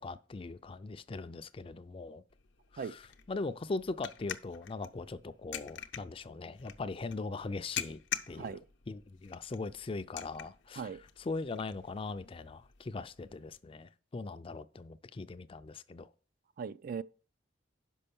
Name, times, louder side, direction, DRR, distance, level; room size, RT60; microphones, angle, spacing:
voice 1, 0.0-2.2 2.7-3.0 3.3-8.0 8.3-8.5 8.9-10.9 11.2-16.1, left 3 dB, 30° left, 0.4 m, -40 dB
sound 1, 2.3-13.6, left 10 dB, 80° left, 0.7 m, -46 dB
voice 2, 8.3-8.6 10.8-11.0 16.6-17.0, right 6 dB, 50° right, 0.3 m, -39 dB
6.1 x 5.5 x 6.9 m
head